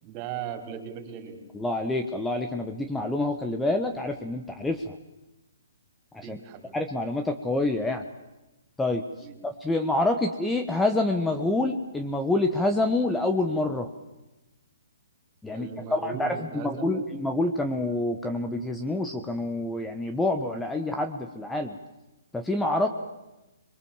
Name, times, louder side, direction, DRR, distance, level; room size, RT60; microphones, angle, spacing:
voice 1, 0.0-1.4 6.2-6.7 9.2-9.4 15.5-17.1 22.8-22.9, right 8 dB, 30° right, 4 dB, 5.1 m, -38 dB
voice 2, 1.5-5.0 6.1-6.4 6.7-8.0 8.8-9.0 9.4-13.9 15.4-21.8 22.3-22.9, left 2 dB, 5° left, 5 dB, 1.4 m, -27 dB
26.5 x 23.0 x 7.4 m, 1.0 s
figure-of-eight pair, 130°, 0 cm